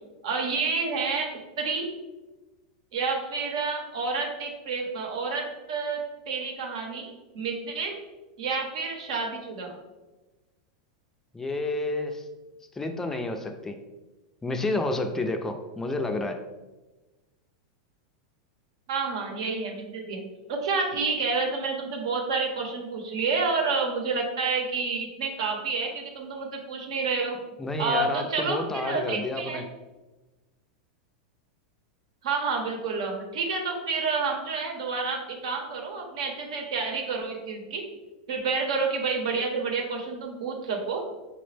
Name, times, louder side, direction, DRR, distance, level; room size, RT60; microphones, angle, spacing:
voice 1, 0.2-1.3 1.6-1.9 2.9-7.9 8.4-9.8 18.9-20.2 20.5-27.3 27.8-29.6 32.2-37.8 38.3-41.0, right 4 dB, 70° right, 2 dB, 0.8 m, -29 dB
voice 2, 11.3-12.3 12.7-13.8 14.4-16.4 27.6-29.6, left 2 dB, 15° left, 6 dB, 0.4 m, -30 dB
4.9 x 2.0 x 3.2 m, 1.1 s
hypercardioid pair, 105°, 3 cm